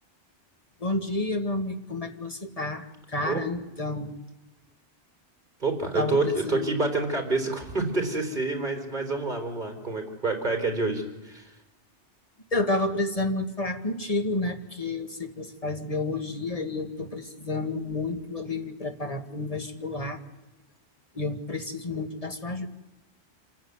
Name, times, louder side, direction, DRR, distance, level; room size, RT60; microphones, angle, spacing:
voice 1, 0.8-4.1 6.0-6.8 12.5-20.2 21.1-22.7, left 2 dB, 30° left, 5 dB, 2.0 m, -30 dB
voice 2, 5.6-11.5, right 3 dB, 45° right, 3 dB, 4.0 m, -28 dB
26.5 x 15.0 x 9.6 m, 1.0 s
omnidirectional pair, 1.2 m